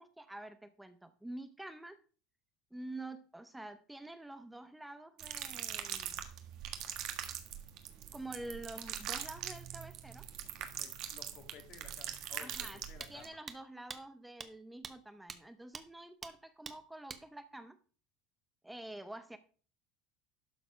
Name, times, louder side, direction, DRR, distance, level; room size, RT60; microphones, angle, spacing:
voice 1, 0.0-2.0 2.7-6.2 8.1-10.2 12.4-12.8 13.1-17.8 18.6-19.4, right 2 dB, 5° right, 10 dB, 0.8 m, -48 dB
sound 1, 5.2-13.3, right 10 dB, 60° right, 1.5 m, -42 dB
voice 2, 10.8-13.4, left 7 dB, 55° left, 5 dB, 2.1 m, -55 dB
sound 2, 12.5-12.6 13.0-13.1 13.5-13.6 13.9-14.0 14.4-14.5 14.8-14.9 15.3-15.4 15.7-15.8 16.2-16.3 16.6-16.8 17.1-17.2, right 6 dB, 30° right, 1.0 m, -44 dB
12.0 x 4.2 x 5.0 m, 0.39 s
supercardioid pair, 105°, 0 cm